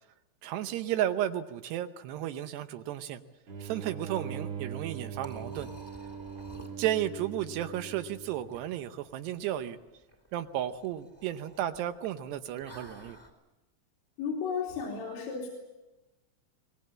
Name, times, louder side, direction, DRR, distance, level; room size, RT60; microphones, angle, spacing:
voice 1, 0.4-3.2 3.6-5.7 6.8-9.8 10.3-13.2, right 12 dB, 75° right, 10 dB, 2.8 m, -33 dB
sound 1, 3.5-8.8, right 7 dB, 40° right, 2.5 m, -41 dB
Liquid, 4.7-13.3, right 1 dB, 5° left, 1.6 m, -53 dB
voice 2, 14.2-15.5, left 6 dB, 80° left, -1 dB, 5.3 m, -33 dB
24.5 x 19.5 x 7.5 m, 1.1 s
omnidirectional pair, 5.2 m